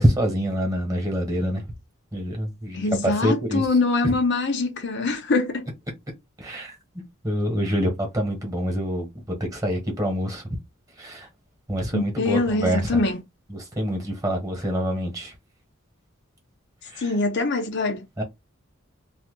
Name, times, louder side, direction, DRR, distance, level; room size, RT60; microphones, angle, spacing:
voice 1, 0.0-1.6 2.1-3.7 4.0-4.1 6.4-6.7 7.2-10.4 11.0-11.3 11.7-13.0 13.5-15.3 16.9-17.1 18.2-18.3, equal, 15° right, 1.2 m, -26 dB
voice 2, 2.7-5.7 11.9-13.2 17.0-18.1, left 3 dB, 55° left, 0.7 m, -23 dB
2.8 x 2.5 x 3.7 m
head